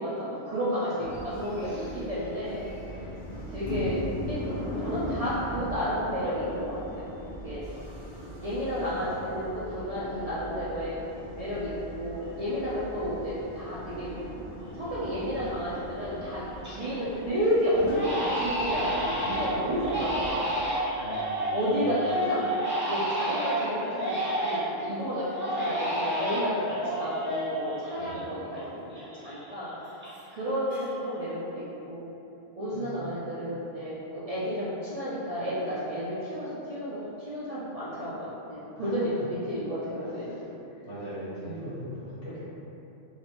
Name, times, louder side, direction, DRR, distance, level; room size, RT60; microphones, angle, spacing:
voice 1, 0.0-2.7 3.5-7.1 7.4-7.6 8.4-11.0 11.4-14.1 14.7-20.8 21.5-22.5 22.9-29.7 30.3-32.0 32.6-40.4, equal, 50° right, -10 dB, 0.4 m, -31 dB
voice 2, 0.7-1.1 1.6-2.0 2.8-3.2 8.7-9.2 21.0-21.7 27.9-28.3 32.7-33.0 38.8-39.2 39.9-40.4 40.8-42.4, equal, 80° left, -11 dB, 1.6 m, -41 dB
sound 1, 1.0-20.3, equal, 55° left, 1.0 m, -39 dB
Crying sobbing, 14.7-14.8 15.3-15.8 16.2-17.0 17.3-17.5 17.9-24.8 25.3-28.6 28.9-30.4 30.7-31.2, right 1 dB, 10° right, 0.8 m, -31 dB
3.1 x 3.1 x 2.9 m, 3.0 s
omnidirectional pair, 1.2 m